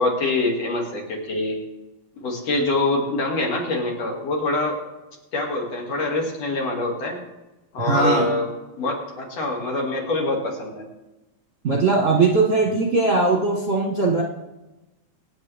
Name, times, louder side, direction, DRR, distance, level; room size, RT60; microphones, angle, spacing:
voice 1, 0.0-1.6 2.2-4.8 5.3-7.2 7.7-8.5 8.8-10.8, left 2 dB, 60° left, -1 dB, 3.6 m, -25 dB
voice 2, 7.8-8.3 11.6-14.2, right 3 dB, 35° right, -2 dB, 1.4 m, -19 dB
25.5 x 9.1 x 3.6 m, 1.0 s
omnidirectional pair, 3.4 m